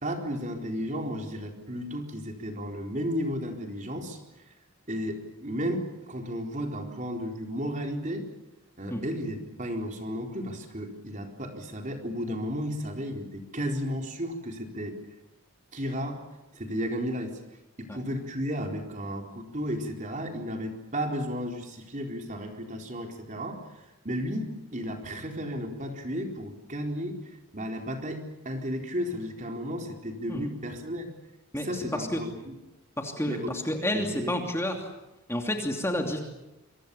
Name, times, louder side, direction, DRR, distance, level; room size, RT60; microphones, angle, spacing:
voice 1, 0.0-4.2 4.9-8.3 8.8-15.0 15.7-16.2 16.5-17.4 17.8-31.1 31.6-32.6 33.2-34.4, equal, 35° right, 3 dB, 4.2 m, -33 dB
voice 2, 31.5-32.2 33.0-34.9 35.3-36.2, left 1 dB, 10° left, 3 dB, 2.9 m, -30 dB
27.5 x 25.0 x 7.1 m, 0.97 s
head